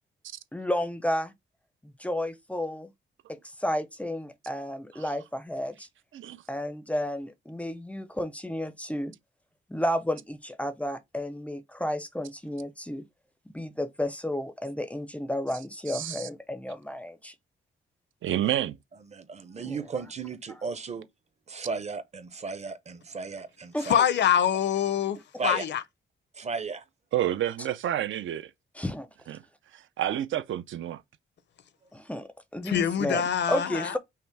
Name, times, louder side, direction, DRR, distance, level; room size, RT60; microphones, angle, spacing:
voice 1, 0.5-1.3 1.8-2.9 3.3-5.9 6.5-9.1 9.7-13.0 13.5-17.3 19.6-19.8 23.7-23.9 28.8-29.1 31.9-34.0, left 1 dB, 5° left, 0.4 m, -32 dB
voice 2, 15.9-16.3 18.2-18.8 27.1-28.5 29.3-29.4 29.7-31.0, right 12 dB, 75° right, 0.5 m, -29 dB
voice 3, 19.1-21.1 21.5-24.0 25.4-25.6 26.3-26.8, right 4 dB, 35° right, 0.6 m, -35 dB
voice 4, 23.8-25.2 25.4-25.8 32.6-33.9, left 9 dB, 60° left, 0.6 m, -24 dB
5.6 x 2.1 x 4.5 m
wide cardioid pair, 145°, 20 cm